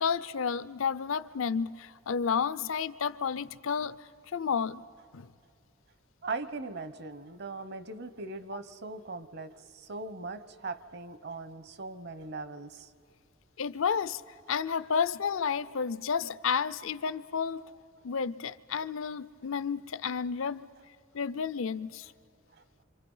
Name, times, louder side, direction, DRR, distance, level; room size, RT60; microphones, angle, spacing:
voice 1, 0.0-4.8 5.1-5.3 13.6-14.2 14.5-17.7 18.0-20.7 21.1-22.1, left 6 dB, 70° left, 0.5 m, -31 dB
voice 2, 6.2-12.9, right 3 dB, 50° right, 1.0 m, -40 dB
26.5 x 26.0 x 5.6 m
head